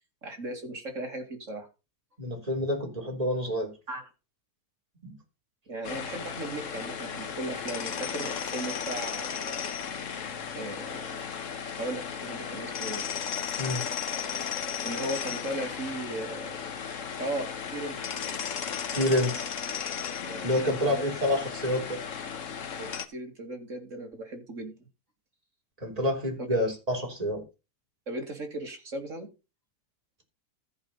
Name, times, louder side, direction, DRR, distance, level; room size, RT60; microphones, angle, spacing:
voice 1, 0.2-1.7 3.9-4.1 5.7-9.6 10.5-11.1 11.7-13.0 14.8-16.6 17.2-18.0 20.2-21.1 22.8-24.7 26.5-26.6 28.1-29.3, right 1 dB, 45° right, 2.7 m, -37 dB
voice 2, 2.2-3.7 5.0-5.1 13.6-13.9 18.9-19.4 20.4-22.0 25.8-27.4, left 1 dB, 20° right, 3.6 m, -28 dB
sound 1, 5.8-23.1, left 7 dB, 50° left, 1.3 m, -35 dB
14.0 x 5.3 x 5.6 m
omnidirectional pair, 1.8 m